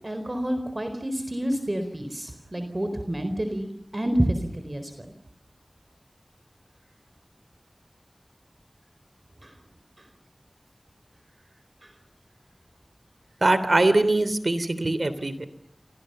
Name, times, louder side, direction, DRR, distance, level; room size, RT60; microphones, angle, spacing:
voice 1, 0.0-4.9 9.4-9.5, right 1 dB, 40° right, 8 dB, 4.2 m, -28 dB
voice 2, 13.4-15.5, right 2 dB, 65° right, 13 dB, 3.3 m, -22 dB
29.0 x 26.5 x 6.9 m, 0.67 s
wide cardioid pair, 45°, 0 cm